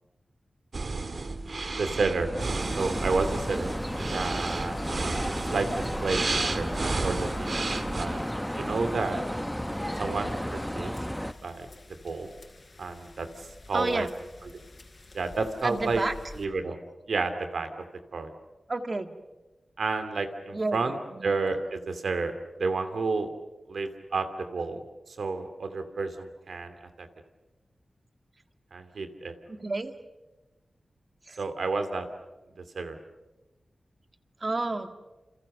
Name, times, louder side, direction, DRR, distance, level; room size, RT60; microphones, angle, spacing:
sound 1, 0.7-8.1, right 3 dB, 55° right, 1.8 m, -32 dB
voice 1, 1.7-2.3 2.8-3.8 4.1-4.8 5.2-5.7 6.0-6.7 7.0-7.6 8.0-8.2 8.5-9.2 10.0-10.9 11.4-11.7 12.0-12.3 12.8-13.3 13.7-14.1 15.1-16.0 16.4-16.8 17.1-17.7 18.1-18.3 19.8-21.0 21.2-23.3 23.7-24.8 25.1-27.1 28.7-29.3 31.4-32.1 32.7-33.0, right 4 dB, 80° right, 8 dB, 2.5 m, -30 dB
sound 2, 1.8-11.3, equal, 5° left, 0.9 m, -33 dB
sound 3, 2.4-16.5, left 2 dB, 40° left, 4.1 m, -51 dB
voice 2, 13.7-14.1 15.6-16.2 18.7-19.1 20.5-20.8 21.1-21.3 29.5-29.9 31.3-31.4 34.4-34.9, right 2 dB, 35° right, 7 dB, 1.9 m, -30 dB
29.0 x 28.5 x 6.7 m, 1.1 s
wide cardioid pair, 105°, 0 cm